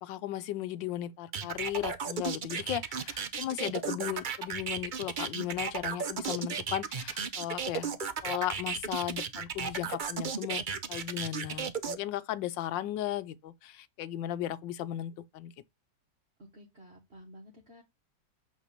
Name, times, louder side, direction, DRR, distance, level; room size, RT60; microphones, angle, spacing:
voice 1, 0.0-7.9 8.2-10.6 10.9-15.5, left 12 dB, 85° left, 1.4 m, -36 dB
sound 1, 1.3-12.0, right 6 dB, 70° right, 0.4 m, -34 dB
voice 2, 16.4-17.8, equal, 35° right, 1.7 m, -52 dB
8.5 x 3.4 x 6.6 m
omnidirectional pair, 2.0 m